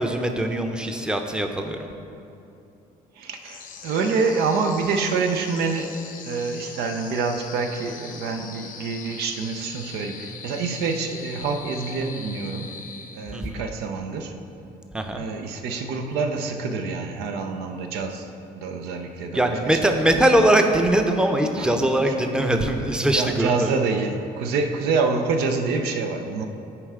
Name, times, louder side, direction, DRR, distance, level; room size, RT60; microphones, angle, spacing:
voice 1, 0.0-1.9 13.3-13.6 14.9-15.2 19.3-23.7, right 1 dB, 5° right, 4 dB, 0.6 m, -21 dB
voice 2, 3.2-5.9 6.3-12.7 13.1-14.3 15.1-18.3 18.5-20.1 21.6-21.7 22.1-22.7 23.1-26.4, right 4 dB, 85° right, 5 dB, 0.6 m, -27 dB
sound 1, 3.4-13.6, left 5 dB, 60° left, 0.7 m, -41 dB
9.7 x 4.5 x 3.7 m, 2.7 s
supercardioid pair, 75°, 16 cm